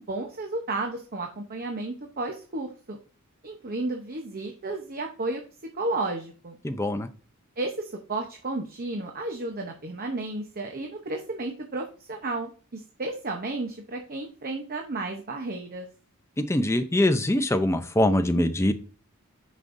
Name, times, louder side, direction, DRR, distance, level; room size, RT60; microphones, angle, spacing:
voice 1, 0.0-3.0 3.4-5.4 5.7-6.6 7.6-15.9, right 2 dB, 40° right, 3 dB, 0.8 m, -33 dB
voice 2, 6.6-7.1 16.4-18.7, left 1 dB, 10° left, 8 dB, 0.5 m, -23 dB
9.6 x 5.3 x 2.6 m, 0.39 s
head